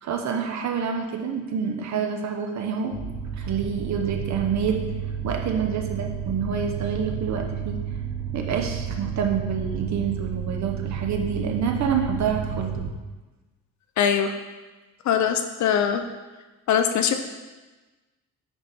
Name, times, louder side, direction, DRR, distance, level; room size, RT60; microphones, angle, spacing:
voice 1, 0.0-2.9 3.4-4.8 5.2-7.8 8.3-12.9, right 6 dB, 55° right, 3 dB, 0.8 m, -27 dB
sound 1, 2.9-12.9, right 8 dB, 35° right, 1.2 m, -31 dB
voice 2, 14.0-14.4 15.1-16.0 16.7-17.1, left 8 dB, 60° left, 7 dB, 0.5 m, -22 dB
9.7 x 3.3 x 4.2 m, 1.2 s
cardioid pair, 160°, 34 cm